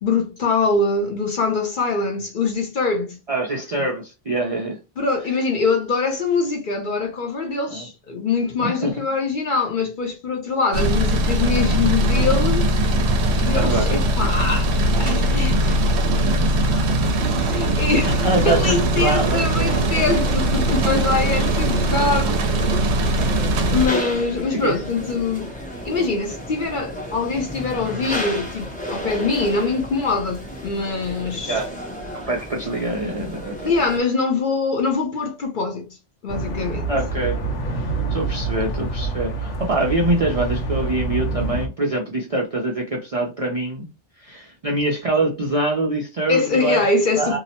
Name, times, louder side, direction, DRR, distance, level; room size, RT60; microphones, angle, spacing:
voice 1, 0.0-3.2 5.0-12.7 13.3-14.7 15.0-15.8 16.2-18.2 18.5-22.4 23.7-25.5 25.8-31.6 33.6-35.9 36.2-36.9 46.3-47.4, left 4 dB, 50° left, 0.7 m, -23 dB
voice 2, 3.3-4.8 7.7-7.8 8.6-8.9 13.5-14.0 16.1-16.5 18.1-19.9 22.5-22.7 24.0-24.1 24.5-24.8 31.5-31.7 32.1-33.7 36.9-37.4 38.1-43.9 44.2-46.8 47.2-47.4, right 2 dB, 50° right, 0.4 m, -24 dB
sound 1, 10.7-23.9, right 1 dB, 70° right, 0.8 m, -20 dB
sound 2, 19.7-34.0, equal, 10° left, 0.5 m, -33 dB
sound 3, 36.3-41.7, right 3 dB, 75° left, 1.0 m, -26 dB
2.7 x 2.0 x 2.8 m
omnidirectional pair, 1.2 m